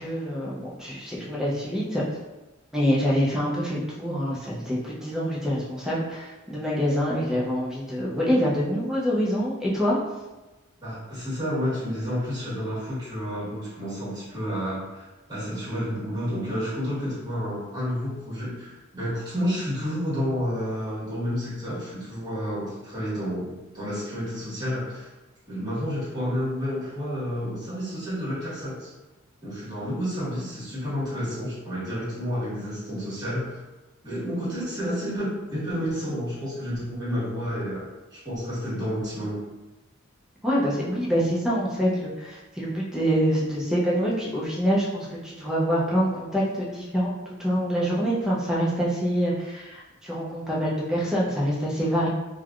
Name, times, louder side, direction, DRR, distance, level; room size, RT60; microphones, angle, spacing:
voice 1, 0.0-2.0 2.7-10.0 40.4-52.1, equal, 5° right, -6 dB, 0.5 m, -26 dB
voice 2, 10.8-25.1 25.5-28.9 29.4-33.6 34.0-39.4, equal, 20° right, -9 dB, 1.3 m, -30 dB
3.2 x 2.2 x 2.4 m, 1.1 s
head